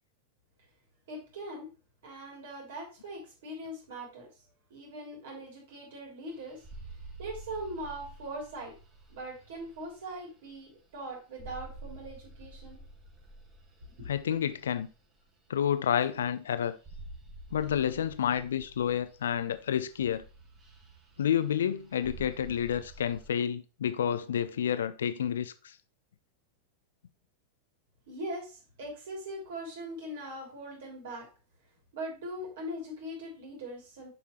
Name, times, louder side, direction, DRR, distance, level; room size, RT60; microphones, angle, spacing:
voice 1, 1.1-1.7 2.0-4.3 4.7-6.6 7.2-8.8 9.1-12.8 14.0-14.1 28.1-31.3 31.9-34.1, right 1 dB, 55° right, 3.2 m, -41 dB
sound 1, 6.3-11.1 11.3-15.6 16.0-16.4 16.7-23.3, right 2 dB, 25° right, 2.2 m, -50 dB
voice 2, 14.1-14.9 15.5-16.8 17.5-20.2 21.2-25.7, left 9 dB, 65° left, 0.5 m, -29 dB
6.9 x 5.8 x 3.1 m
figure-of-eight pair, 90°, 0 cm